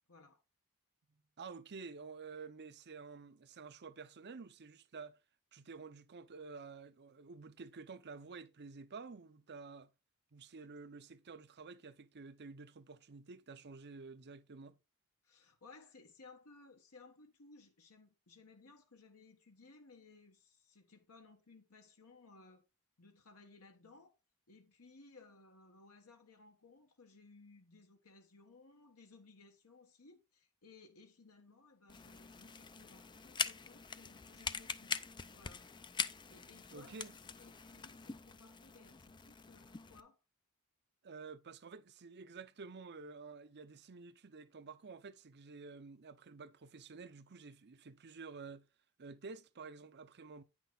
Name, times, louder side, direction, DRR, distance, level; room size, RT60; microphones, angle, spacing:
voice 1, 0.1-0.4 15.2-22.7 23.0-24.2 24.5-34.9 35.3-35.7 36.3-40.2, left 3 dB, 75° left, 1.4 m, -61 dB
voice 2, 1.4-5.2 5.5-9.9 10.3-14.8 36.7-37.1 41.0-48.7 49.0-50.4, right 4 dB, 50° right, 0.7 m, -51 dB
sound 1, 31.9-40.0, left 6 dB, 20° left, 0.4 m, -43 dB
9.3 x 6.0 x 3.9 m
head